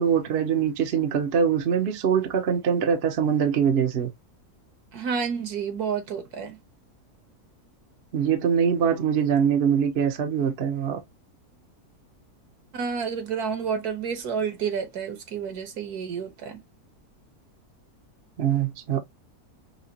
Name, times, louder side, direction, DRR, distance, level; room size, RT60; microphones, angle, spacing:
voice 1, 0.0-4.1 8.1-11.0 18.4-19.0, right 7 dB, 50° right, 0.9 m, -23 dB
voice 2, 4.9-6.6 12.7-16.6, right 6 dB, 75° right, 1.6 m, -30 dB
5.7 x 2.3 x 2.7 m
omnidirectional pair, 1.7 m